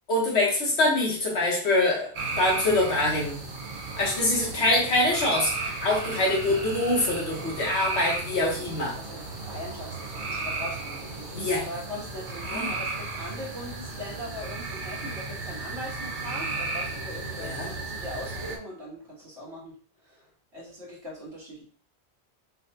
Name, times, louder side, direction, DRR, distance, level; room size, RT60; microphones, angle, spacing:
voice 1, 0.1-2.1 2.4-3.4 4.0-9.0 11.3-11.6 12.5-12.7 17.4-17.7, left 2 dB, 80° left, -2 dB, 1.5 m, -24 dB
sound 1, 2.1-18.6, right 3 dB, 55° right, 0.8 m, -34 dB
voice 2, 9.0-19.8 20.0-21.6, left 1 dB, 80° right, -6 dB, 2.0 m, -40 dB
5.5 x 2.3 x 2.8 m, 0.43 s
omnidirectional pair, 1.1 m